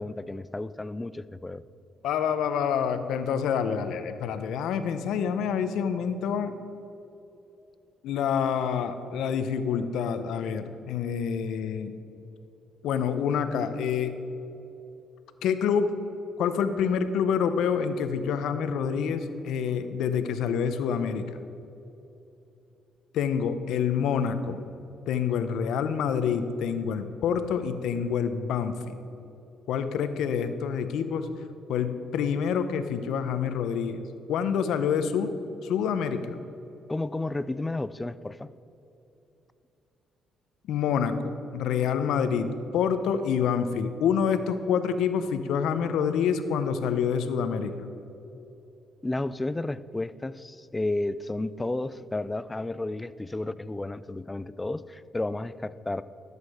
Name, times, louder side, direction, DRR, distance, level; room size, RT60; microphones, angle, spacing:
voice 1, 0.0-1.6 36.9-38.5 49.0-56.0, left 2 dB, 15° left, 16 dB, 0.4 m, -32 dB
voice 2, 2.0-6.5 8.0-12.0 12.8-14.2 15.4-15.9 16.4-21.3 23.1-24.7 25.1-29.0 29.7-31.3 31.7-35.3 35.6-36.4 40.7-47.7, left 7 dB, 85° left, 10 dB, 0.7 m, -27 dB
13.0 x 8.2 x 4.8 m, 3.0 s
cardioid pair, 90°, 0 cm